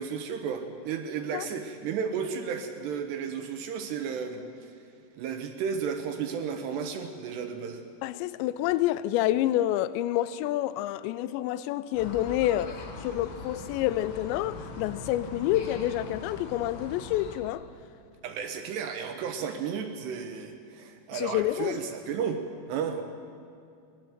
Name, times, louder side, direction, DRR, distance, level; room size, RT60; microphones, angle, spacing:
voice 1, 0.0-4.4 5.2-7.8 18.2-23.0, right 6 dB, 70° right, 2.8 m, -33 dB
voice 2, 8.0-17.7 21.1-21.8, left 14 dB, 85° left, 2.5 m, -28 dB
sound 1, 11.9-17.4, left 3 dB, 65° left, 4.1 m, -41 dB
21.5 x 18.5 x 6.6 m
omnidirectional pair, 5.7 m